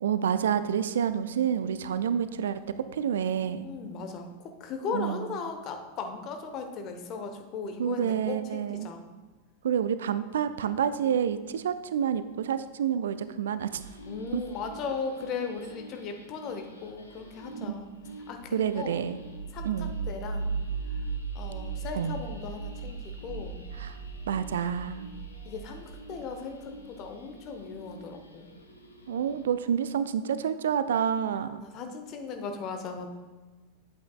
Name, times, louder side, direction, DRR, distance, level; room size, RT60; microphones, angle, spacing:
voice 1, 0.0-3.7 4.9-5.2 7.8-8.9 9.6-13.8 14.3-14.4 17.6-17.7 18.0-18.2 18.5-19.2 19.6-20.0 21.9-22.2 23.8-24.0 24.3-25.1 29.1-31.6, right 8 dB, 60° right, 13 dB, 0.3 m, -28 dB
voice 2, 3.6-9.0 14.1-17.9 18.3-19.0 19.5-20.6 21.0-23.6 25.4-28.5 31.5-33.1, left 5 dB, 35° left, 5 dB, 1.0 m, -37 dB
sound 1, 13.7-29.6, right 4 dB, 80° left, 1.0 m, -39 dB
8.9 x 8.3 x 2.4 m, 1.3 s
figure-of-eight pair, 90°, 0 cm